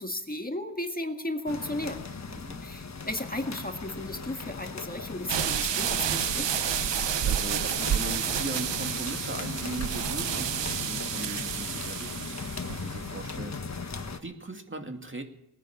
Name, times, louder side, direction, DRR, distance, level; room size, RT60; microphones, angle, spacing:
voice 1, 0.0-2.0 2.6-6.5, left 1 dB, 20° left, 5 dB, 1.7 m, -34 dB
sound 1, 1.5-14.2, left 4 dB, 40° left, 1.4 m, -38 dB
voice 2, 2.3-2.6 6.9-15.2, right 2 dB, 30° right, 4 dB, 2.3 m, -39 dB
sound 2, 5.3-13.2, right 9 dB, 80° right, 0.8 m, -30 dB
19.5 x 10.0 x 7.2 m, 0.83 s
wide cardioid pair, 75°, 42 cm